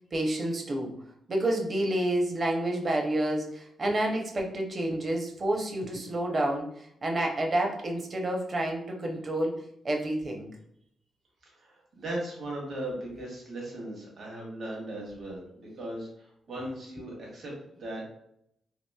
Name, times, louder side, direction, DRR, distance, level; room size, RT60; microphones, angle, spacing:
voice 1, 0.1-0.9 1.3-10.5, right 1 dB, 45° right, 1 dB, 0.7 m, -29 dB
voice 2, 11.4-17.5 17.8-18.1, right 1 dB, 65° right, -3 dB, 1.1 m, -38 dB
2.9 x 2.5 x 2.3 m, 0.73 s
supercardioid pair, 60°, 0 cm